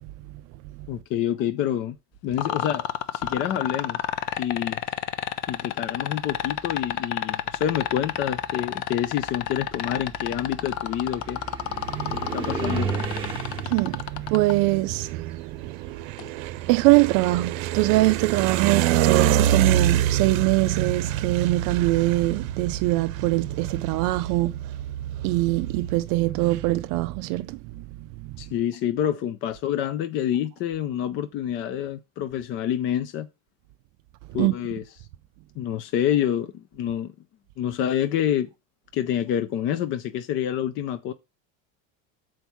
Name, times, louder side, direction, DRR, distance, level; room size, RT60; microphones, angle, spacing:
voice 1, 0.9-2.0 2.2-2.9 3.1-4.0 4.4-4.8 5.5-11.4 12.1-12.9 28.4-33.3 34.3-34.8 35.6-37.1 37.6-38.5 38.9-41.1, left 10 dB, 30° left, 0.4 m, -27 dB
sound 1, 2.4-14.5 16.2-16.3, left 12 dB, 65° left, 0.7 m, -29 dB
sound 2, 4.0-4.6 5.6-5.7 6.2-16.1 16.4-19.1, right 5 dB, 10° right, 1.1 m, -36 dB
voice 2, 11.8-12.3 13.3-16.0 16.3-24.8 25.2-28.4 34.4-34.5, right 19 dB, 55° right, 0.4 m, -23 dB
sound 3, 11.9-26.0, right 12 dB, 85° right, 0.7 m, -27 dB
7.0 x 4.6 x 6.1 m
cardioid pair, 160°, 40 cm